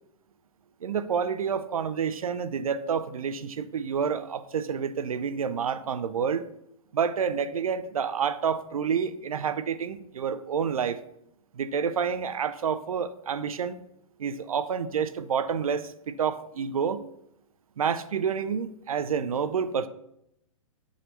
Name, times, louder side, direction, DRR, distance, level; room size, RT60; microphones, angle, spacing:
voice 1, 0.8-6.4 6.9-11.0 11.5-13.8 14.2-17.0 17.8-19.9, right 7 dB, 75° right, 0.7 m, -28 dB
8.2 x 4.2 x 6.8 m
hypercardioid pair, 115°, 18 cm